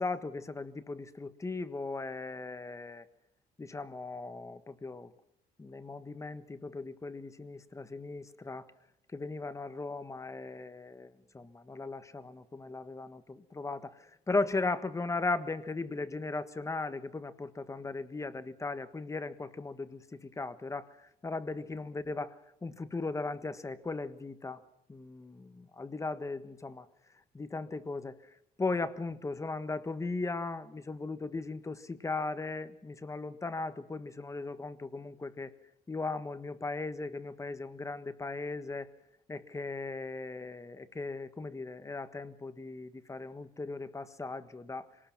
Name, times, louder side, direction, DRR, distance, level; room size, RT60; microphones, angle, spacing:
voice 1, 0.0-3.0 3.6-5.1 5.6-8.7 9.1-22.4 22.6-24.6 24.9-26.9 27.3-28.2 28.6-35.5 35.9-38.9 39.3-44.9, left 3 dB, 20° left, 12 dB, 1.4 m, -37 dB
25.5 x 19.0 x 6.0 m, 0.80 s
cardioid pair, 110°, 17 cm